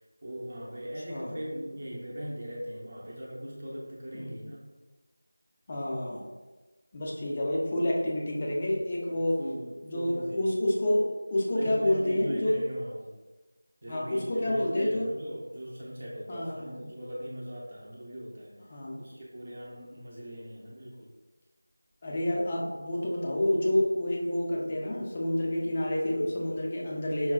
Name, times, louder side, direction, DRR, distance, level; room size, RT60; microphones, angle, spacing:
voice 1, 0.2-4.7 9.4-10.5 11.5-13.2 13.8-18.5 19.0-21.1 22.5-22.8, equal, 30° right, -5 dB, 0.6 m, -40 dB
voice 2, 4.1-4.5 5.7-6.3 6.9-9.4 9.8-12.6 13.9-15.1 16.3-16.9 18.7-19.0 22.0-27.3, left 1 dB, 20° left, -3 dB, 0.4 m, -28 dB
5.6 x 2.2 x 2.2 m, 1.2 s
figure-of-eight pair, 175°, 0 cm